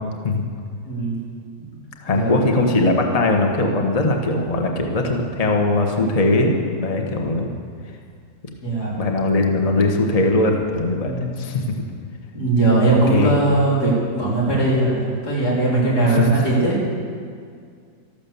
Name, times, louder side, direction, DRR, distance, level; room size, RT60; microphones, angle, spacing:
voice 1, 0.8-1.2 2.1-2.5 8.6-8.9 11.0-11.4 12.3-16.8, right 2 dB, 85° left, -6 dB, 4.5 m, -20 dB
voice 2, 2.0-7.5 9.0-11.1 11.4-11.6 13.1-13.4 16.0-16.3, left 2 dB, 25° left, 2 dB, 1.3 m, -20 dB
13.5 x 12.0 x 7.1 m, 2.1 s
omnidirectional pair, 1.7 m